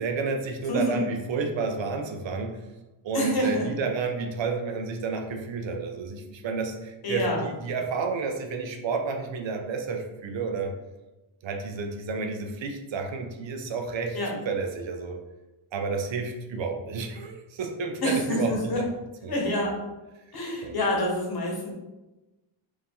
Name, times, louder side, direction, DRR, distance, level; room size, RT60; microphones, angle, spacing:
voice 1, 0.0-2.5 3.0-10.7 11.4-14.2 14.5-15.2 15.7-18.9 19.2-19.4 20.6-20.7, right 4 dB, 65° right, 4 dB, 0.7 m, -30 dB
voice 2, 0.7-1.1 3.1-3.7 7.0-7.5 14.1-14.3 18.0-18.8 19.3-19.7 20.3-21.7, left 1 dB, 45° left, -1 dB, 1.2 m, -27 dB
4.7 x 2.6 x 3.6 m, 1.1 s
wide cardioid pair, 145°, 50 cm